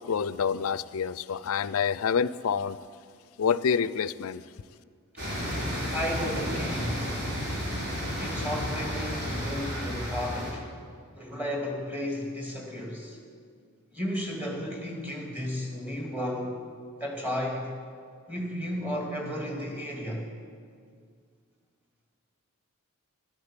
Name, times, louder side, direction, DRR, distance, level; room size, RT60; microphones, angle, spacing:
voice 1, 0.0-2.8 3.4-4.4, left 6 dB, 75° left, 17 dB, 0.4 m, -27 dB
sound 1, 5.2-10.5, equal, 45° right, 4.2 m, -32 dB
voice 2, 5.9-7.0 8.2-10.6 11.2-13.2 13.9-16.6 17.0-17.8 18.3-20.3, equal, 10° right, 0 dB, 2.3 m, -33 dB
12.0 x 12.0 x 7.4 m, 2.1 s
head